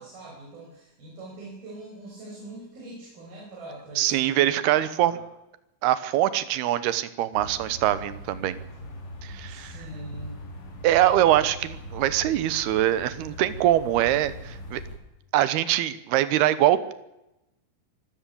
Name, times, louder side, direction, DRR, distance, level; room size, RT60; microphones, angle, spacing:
voice 1, 0.0-4.1 4.6-5.2 9.5-10.3, right 2 dB, 50° right, -3 dB, 8.1 m, -43 dB
voice 2, 4.0-5.2 5.8-8.6 9.2-9.9 10.8-14.8 15.3-16.9, right 13 dB, 70° right, 15 dB, 2.6 m, -23 dB
sound 1, 7.3-15.0, equal, 75° left, 6.5 m, -40 dB
25.0 x 15.0 x 8.5 m, 0.91 s
omnidirectional pair, 5.6 m